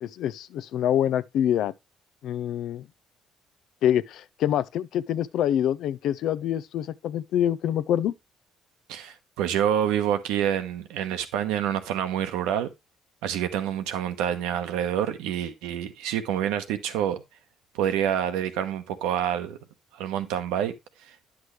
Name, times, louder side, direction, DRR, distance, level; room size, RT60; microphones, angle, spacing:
voice 1, 0.0-1.7 2.2-2.9 3.8-8.1, left 10 dB, 75° left, 0.5 m, -26 dB
voice 2, 8.9-12.7 13.2-17.2 17.7-19.6 20.0-20.7, right 10 dB, 85° right, 1.0 m, -27 dB
9.7 x 6.1 x 3.2 m
supercardioid pair, 70°, 0 cm